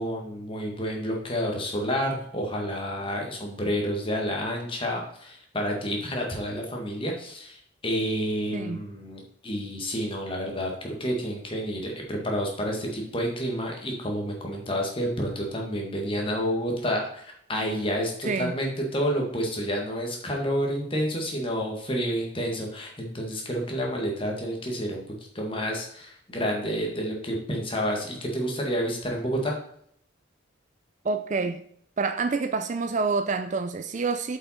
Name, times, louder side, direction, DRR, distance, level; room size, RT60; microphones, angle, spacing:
voice 1, 0.0-25.0 25.4-29.5, equal, 25° left, 1.8 m, -29 dB
voice 2, 31.0-31.6 32.0-34.4, right 4 dB, 40° right, 0.4 m, -27 dB
8.0 x 5.6 x 4.3 m
head